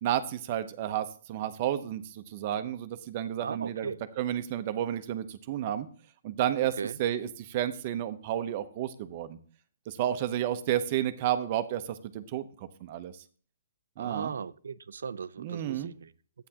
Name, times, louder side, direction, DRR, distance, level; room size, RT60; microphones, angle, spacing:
voice 1, 0.0-3.9 4.2-5.9 6.2-9.4 9.9-13.1 14.0-14.3 15.4-15.9, right 11 dB, 35° right, 0.8 m, -31 dB
voice 2, 3.4-4.0 6.8-7.0 14.0-16.1, right 6 dB, 85° right, 0.4 m, -37 dB
12.0 x 8.9 x 2.9 m
hypercardioid pair, 160°, 0 cm